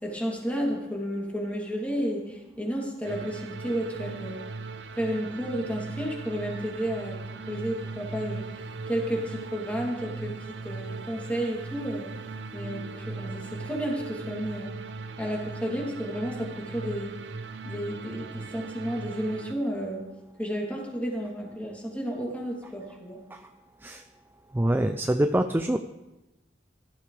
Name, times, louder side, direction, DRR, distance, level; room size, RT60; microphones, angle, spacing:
voice 1, 0.0-4.4 5.0-7.2 7.5-10.4 10.6-12.1 12.5-14.7 15.2-17.1 17.6-20.0 20.4-23.2, equal, 10° left, -3 dB, 2.9 m, -32 dB
sound 1, 3.0-19.5, right 3 dB, 70° right, 0.6 m, -39 dB
voice 2, 24.5-25.8, right 1 dB, 10° right, 8 dB, 0.4 m, -25 dB
16.5 x 13.5 x 3.4 m, 1.0 s
head